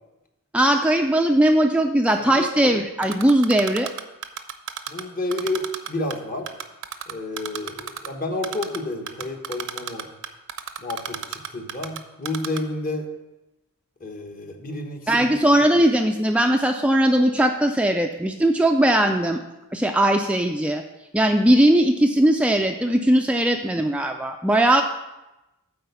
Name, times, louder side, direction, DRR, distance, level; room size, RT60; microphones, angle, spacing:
voice 1, 0.5-3.9 15.1-19.4 19.7-20.8 21.1-24.8, right 1 dB, 5° right, 4 dB, 0.3 m, -19 dB
voice 2, 2.2-2.5 4.9-6.5 7.1-10.1 10.8-13.1 14.0-15.3, left 2 dB, 40° left, 4 dB, 1.1 m, -30 dB
Typing, 3.0-5.0 5.3-6.1 6.5-8.1 8.4-8.8 9.1-12.0 12.2-12.6, right 9 dB, 60° right, 0.6 m, -31 dB
8.8 x 4.3 x 6.8 m, 0.98 s
head